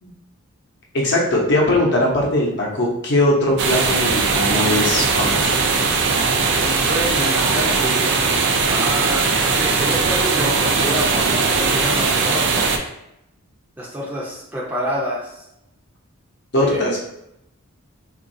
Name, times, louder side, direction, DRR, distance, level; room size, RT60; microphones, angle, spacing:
voice 1, 0.9-5.6 16.5-17.1, left 1 dB, 50° left, -3 dB, 0.8 m, -20 dB
sound 1, 3.6-12.8, right 4 dB, 55° right, 0.4 m, -19 dB
voice 2, 6.6-8.2 8.6-12.7 13.8-15.3 16.6-16.9, equal, 10° right, -6 dB, 0.6 m, -28 dB
3.8 x 2.5 x 2.6 m, 0.81 s
head